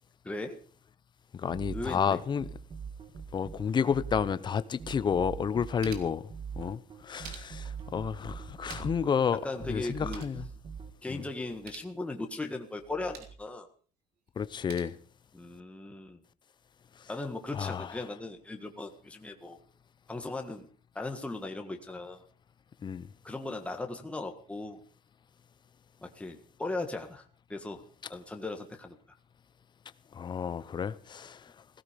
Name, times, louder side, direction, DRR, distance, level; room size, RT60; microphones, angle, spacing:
voice 1, 0.2-0.6 1.7-2.2 9.4-10.2 11.0-13.7 15.3-16.2 17.1-19.6 20.1-20.7 20.9-22.2 23.2-24.8 26.0-27.8 28.1-29.0, left 2 dB, 5° left, 1.6 m, -38 dB
voice 2, 1.3-2.5 3.3-6.3 6.6-9.4 9.7-10.5 11.1-11.2 14.4-14.9 17.5-17.9 22.8-23.1 30.1-31.5, left 7 dB, 25° left, 0.8 m, -31 dB
sound 1, 1.5-10.9, right 6 dB, 30° right, 1.7 m, -42 dB
sound 2, 5.4-6.3 6.9-7.8 8.4-9.1 9.4-9.5 9.8-10.4 11.4-11.9 12.8-13.4 14.4-14.8, right 7 dB, 70° right, 3.1 m, -49 dB
17.5 x 15.5 x 5.2 m
cardioid pair, 155°, 17 cm